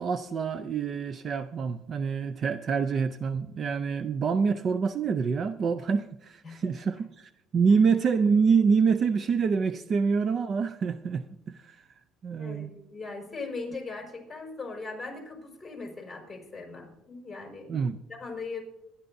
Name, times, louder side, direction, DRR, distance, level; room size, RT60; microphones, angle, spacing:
voice 1, 0.0-11.8 12.2-12.7 17.7-18.0, right 5 dB, 40° right, 0.5 m, -26 dB
voice 2, 6.4-6.7 12.4-17.8 18.1-18.6, left 3 dB, 15° left, 4.7 m, -39 dB
24.5 x 11.0 x 2.6 m
cardioid pair, 130°, 0 cm